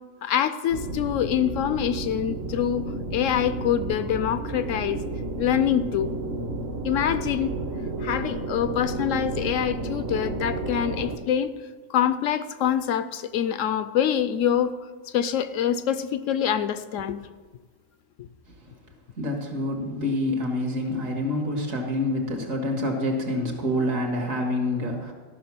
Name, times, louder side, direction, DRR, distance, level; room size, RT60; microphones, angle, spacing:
voice 1, 0.2-2.9 3.1-5.1 5.4-6.1 6.8-7.5 8.0-11.5 11.9-14.7 15.1-17.2 18.2-18.3, left 9 dB, 75° left, 12 dB, 0.9 m, -25 dB
sound 1, 0.7-11.2, right 2 dB, 55° right, 1.0 m, -32 dB
voice 2, 19.2-25.1, left 1 dB, 75° right, 2 dB, 2.2 m, -27 dB
13.0 x 6.1 x 6.0 m, 1.4 s
omnidirectional pair, 1.4 m